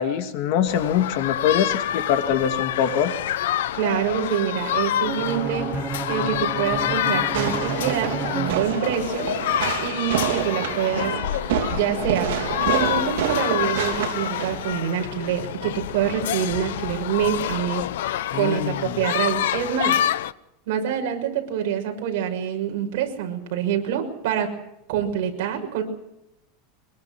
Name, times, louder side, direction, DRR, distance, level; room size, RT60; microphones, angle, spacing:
voice 1, 0.0-3.1 18.3-19.0, left 8 dB, 45° left, 8 dB, 2.1 m, -23 dB
sound 1, 0.7-20.3, left 12 dB, 85° left, 0.9 m, -27 dB
voice 2, 3.7-5.8 6.1-9.3 9.8-11.1 11.6-12.3 12.6-17.8 18.3-20.0 20.7-24.5 24.9-25.8, right 9 dB, 55° right, 3 dB, 6.0 m, -26 dB
Bowed string instrument, 5.0-9.2, right 6 dB, 15° right, 1.2 m, -32 dB
Fireworks, 7.3-14.7, right 11 dB, 75° right, 3.6 m, -28 dB
24.0 x 22.5 x 6.1 m, 0.82 s
supercardioid pair, 175°, 0 cm